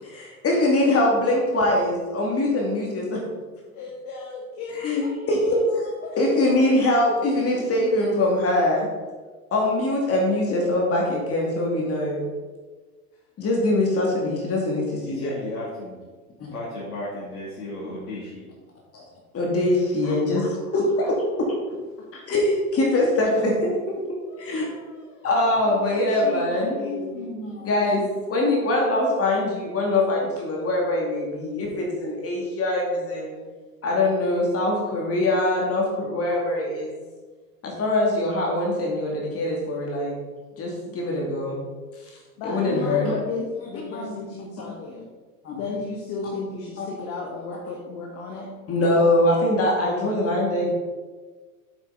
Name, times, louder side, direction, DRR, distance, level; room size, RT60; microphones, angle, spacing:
voice 1, 0.0-3.2 4.7-8.9 9.5-12.3 13.4-15.3 16.4-16.5 18.9-19.0 19.3-21.5 22.1-24.6 25.2-33.4 33.8-36.9 37.6-40.2 40.6-41.6 42.4-43.2 43.9-44.1 45.4-45.6 46.8-46.9 48.7-50.7, left 1 dB, 30° left, -2 dB, 2.6 m, -23 dB
voice 2, 3.7-5.5 6.0-6.7 20.0-20.2 20.4-20.5 22.8-23.1 24.3-24.7 25.3-27.4 42.4-45.1 45.5-48.5, left 4 dB, 50° left, -1 dB, 1.9 m, -35 dB
voice 3, 15.0-16.0 16.5-18.4, left 1 dB, 80° left, -8 dB, 3.0 m, -34 dB
8.9 x 8.2 x 4.1 m, 1.4 s
hypercardioid pair, 90°, 45 cm